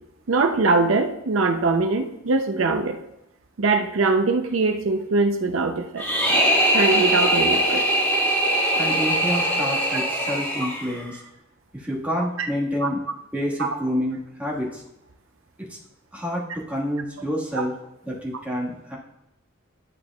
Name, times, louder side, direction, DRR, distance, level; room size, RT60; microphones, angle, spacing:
voice 1, 0.3-3.0 3.6-6.0 6.7-7.8 12.8-12.9 13.6-13.7 17.5-17.6, right 3 dB, 70° right, 5 dB, 0.6 m, -22 dB
sound 1, 6.0-11.1, right 1 dB, 10° left, 1.6 m, -21 dB
voice 2, 8.8-11.2 11.7-13.0 13.3-14.8 15.6-15.8 16.1-17.7 18.0-19.0, equal, 10° right, -4 dB, 1.6 m, -28 dB
11.0 x 6.5 x 2.3 m, 0.86 s
head